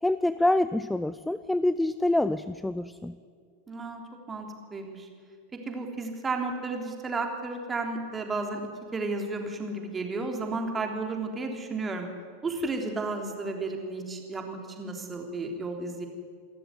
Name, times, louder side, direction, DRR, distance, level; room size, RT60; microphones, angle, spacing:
voice 1, 0.0-3.2, left 1 dB, 5° left, 15 dB, 0.5 m, -26 dB
voice 2, 3.7-4.0 4.3-5.1 5.7-8.6 8.9-12.1 12.4-16.1, right 3 dB, 15° right, 3 dB, 3.5 m, -33 dB
27.5 x 13.5 x 9.6 m, 2.1 s
figure-of-eight pair, 90°, 0 cm